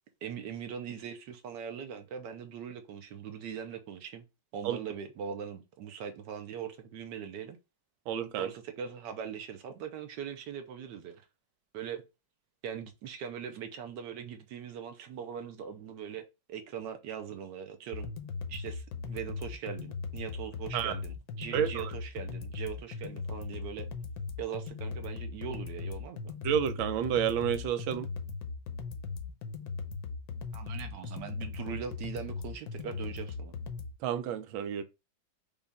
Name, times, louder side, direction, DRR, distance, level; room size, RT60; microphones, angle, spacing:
voice 1, 0.2-4.2 4.5-7.6 8.4-11.2 11.7-12.0 12.6-18.1 18.5-23.9 24.4-26.3 30.5-33.5, right 8 dB, 70° right, 1.3 m, -41 dB
voice 2, 8.1-8.5 20.7-20.9 21.5-21.9 26.4-28.1 34.0-34.8, right 9 dB, 85° right, 1.4 m, -30 dB
sound 1, 17.9-33.9, left 4 dB, 65° left, 1.0 m, -39 dB
5.3 x 2.4 x 3.4 m
omnidirectional pair, 2.1 m